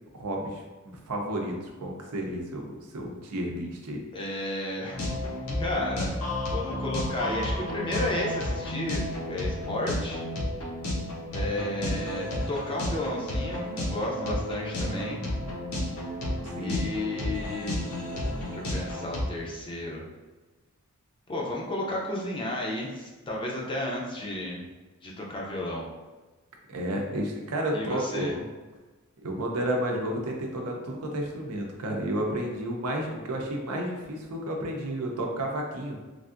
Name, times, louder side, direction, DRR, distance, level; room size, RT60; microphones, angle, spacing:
voice 1, 0.1-4.0 16.4-16.9 26.7-28.4 29.2-36.0, right 1 dB, 85° right, 1 dB, 0.6 m, -32 dB
voice 2, 4.1-5.2 5.6-6.2 6.5-10.2 11.3-15.2 16.6-17.8 18.5-20.1 21.3-24.7 25.0-25.9 27.7-28.3, left 1 dB, 20° left, -3 dB, 0.5 m, -33 dB
sound 1, 4.9-19.2, left 1 dB, 80° left, 0.7 m, -32 dB
3.3 x 2.5 x 2.5 m, 1.2 s
head